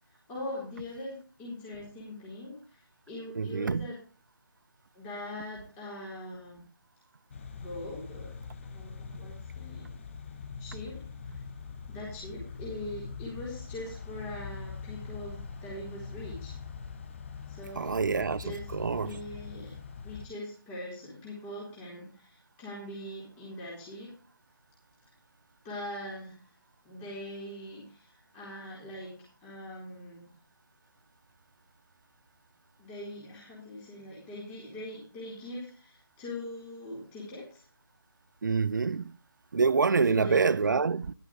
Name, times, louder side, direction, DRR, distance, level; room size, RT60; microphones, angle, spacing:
voice 1, 0.1-4.0 4.9-6.6 7.5-8.4 8.7-9.9 10.6-11.4 11.9-16.6 17.5-19.7 20.0-24.1 25.6-26.4 26.8-30.3 32.8-37.6 40.0-40.8, left 1 dB, 15° left, 4.1 m, -42 dB
voice 2, 3.4-3.9 17.8-19.1 38.4-39.1 39.5-41.1, right 5 dB, 60° right, 0.6 m, -26 dB
sound 1, 7.3-20.3, left 5 dB, 35° left, 0.8 m, -43 dB
14.5 x 12.0 x 3.2 m
figure-of-eight pair, 160°, 12 cm